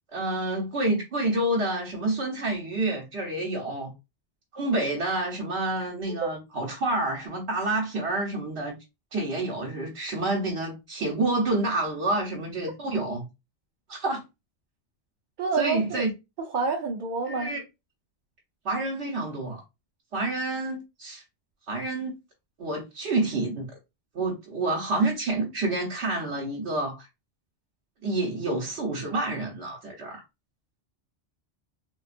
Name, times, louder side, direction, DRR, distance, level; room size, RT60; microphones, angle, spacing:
voice 1, 0.1-3.9 4.5-8.8 9.1-13.2 13.9-14.2 15.6-16.1 17.3-17.6 18.6-19.6 20.1-21.2 21.7-22.1 22.6-23.7 24.1-27.1 28.0-30.2, right 2 dB, 75° right, 1.1 m, -28 dB
voice 2, 15.4-16.1 16.5-17.6 28.4-28.6, right 4 dB, 55° right, 0.6 m, -28 dB
3.8 x 2.3 x 2.4 m
omnidirectional pair, 1.1 m